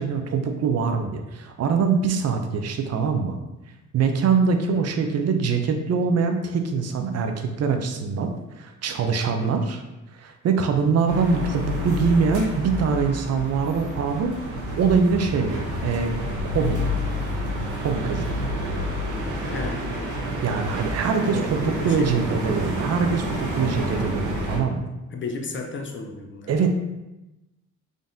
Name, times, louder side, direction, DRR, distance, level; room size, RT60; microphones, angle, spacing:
voice 1, 0.0-3.4 3.9-8.3 8.6-9.8 10.2-14.4 14.8-16.1 16.5-16.8 17.8-18.4 20.4-21.6 21.8-24.9 26.5-26.7, right 5 dB, 55° right, 5 dB, 0.6 m, -23 dB
sound 1, 11.1-24.6, equal, 75° right, 1.0 m, -29 dB
voice 2, 19.5-19.9 21.3-22.7 25.1-26.7, left 4 dB, 40° left, 3 dB, 0.6 m, -34 dB
3.8 x 3.6 x 2.6 m, 0.99 s
cardioid pair, 90°, 30 cm